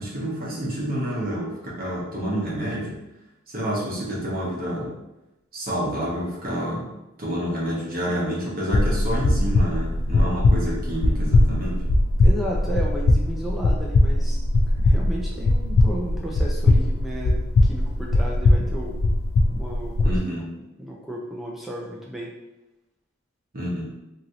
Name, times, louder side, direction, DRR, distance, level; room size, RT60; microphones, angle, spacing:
voice 1, 0.0-3.0 3.5-5.0 5.5-11.8 20.0-20.5 23.5-23.9, equal, 45° right, -5 dB, 1.0 m, -28 dB
sound 1, 8.7-20.2, left 2 dB, 70° left, 0.4 m, -20 dB
voice 2, 12.2-14.4 14.8-19.0 19.5-20.2 20.8-22.3, equal, ahead, -3 dB, 0.4 m, -33 dB
3.0 x 2.7 x 2.6 m, 0.95 s
head